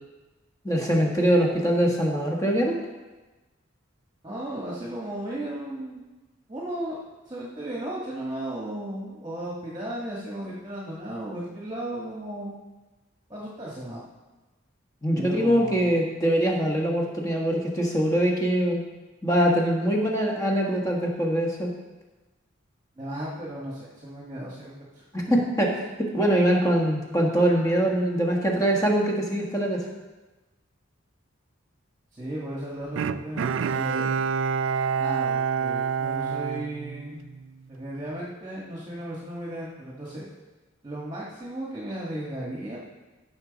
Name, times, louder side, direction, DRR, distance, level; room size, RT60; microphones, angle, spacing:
voice 1, 0.6-2.8 15.0-18.8 19.2-21.7 25.1-25.7 26.0-29.8, right 1 dB, 15° left, -1 dB, 1.4 m, -23 dB
voice 2, 4.2-6.0 6.5-7.0 7.3-12.5 13.3-14.0 15.1-15.9 23.0-25.4 32.1-34.2 35.0-37.2 37.7-40.3 40.8-42.8, right 1 dB, 20° right, -5 dB, 1.4 m, -35 dB
Bowed string instrument, 33.0-37.5 37.9-38.0, right 6 dB, 70° right, 0.3 m, -27 dB
15.0 x 6.2 x 4.0 m, 1.2 s
head